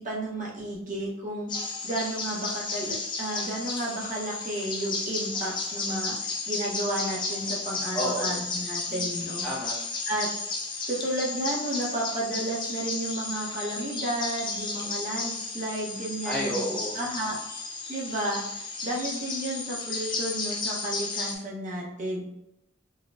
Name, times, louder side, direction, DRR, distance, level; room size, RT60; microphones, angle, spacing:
voice 1, 0.0-1.5 1.8-9.4 10.0-10.3 10.9-16.6 16.9-17.3 17.9-22.2, right 1 dB, 40° right, -4 dB, 0.9 m, -32 dB
sound 1, 1.5-21.4, left 3 dB, 25° left, 0.4 m, -33 dB
voice 2, 7.9-8.3 8.9-9.2 9.4-9.7 14.8-15.1 16.2-17.0, equal, 5° left, -7 dB, 0.9 m, -32 dB
4.0 x 2.2 x 2.5 m, 0.83 s
head